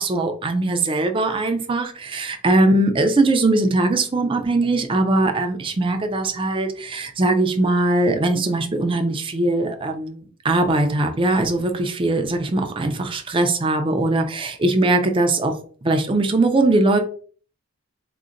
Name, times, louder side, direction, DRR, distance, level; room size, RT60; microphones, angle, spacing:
voice 1, 0.0-15.6 15.8-17.0, right 2 dB, 25° right, 5 dB, 0.4 m, -20 dB
3.8 x 2.1 x 2.4 m, 0.43 s
head